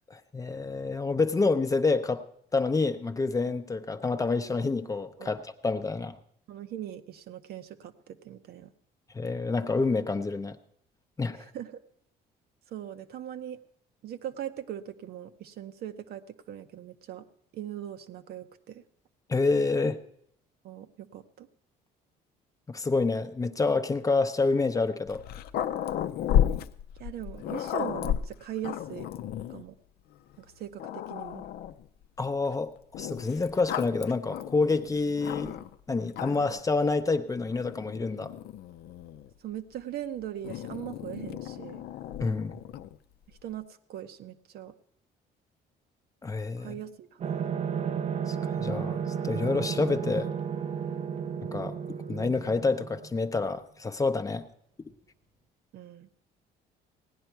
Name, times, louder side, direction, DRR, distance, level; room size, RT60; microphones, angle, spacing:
voice 1, 0.1-2.2 2.5-6.2 9.1-10.6 11.2-11.4 19.3-20.0 22.7-25.2 32.2-35.6 35.9-38.3 42.2-42.6 46.2-46.8 48.3-50.3 51.5-51.8 52.1-54.5, left 3 dB, 20° left, 9 dB, 0.6 m, -28 dB
voice 2, 6.5-8.7 11.4-11.8 12.7-13.6 14.0-17.3 17.5-18.8 20.6-21.5 27.0-29.1 29.5-29.8 30.4-31.5 39.4-41.8 43.3-44.7 46.6-47.5 55.7-56.1, right 11 dB, 65° right, 8 dB, 0.8 m, -40 dB
Growling, 25.1-29.6 30.3-30.4 30.8-31.9 32.9-35.8 36.1-36.6 37.5-39.3 40.4-43.0, left 10 dB, 70° left, 0.5 m, -33 dB
sound 1, 47.2-53.5, right 7 dB, 40° right, 0.5 m, -33 dB
17.0 x 10.0 x 4.5 m, 0.72 s
cardioid pair, 110°, 17 cm